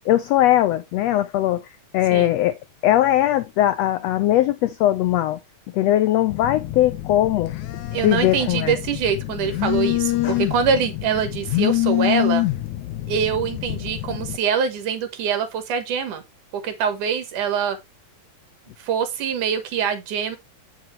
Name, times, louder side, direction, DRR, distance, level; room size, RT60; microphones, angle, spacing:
voice 1, 0.1-1.6 1.9-2.6 2.8-5.4 5.7-7.5 8.0-8.7 10.2-10.4, left 13 dB, 90° left, 1.4 m, -20 dB
Telephone, 6.3-14.4, left 17 dB, 70° left, 2.2 m, -26 dB
voice 2, 7.9-12.5 13.1-16.2 16.5-17.8 18.8-20.4, right 7 dB, 70° right, 3.0 m, -24 dB
8.3 x 7.4 x 3.2 m
omnidirectional pair, 3.7 m